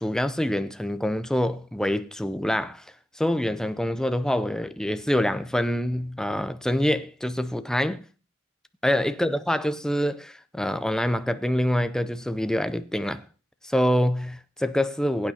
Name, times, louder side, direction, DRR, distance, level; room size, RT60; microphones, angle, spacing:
voice 1, 0.0-2.8 3.2-8.0 8.8-13.2 13.6-15.3, equal, 5° left, 0.5 m, -26 dB
21.5 x 8.8 x 2.8 m
head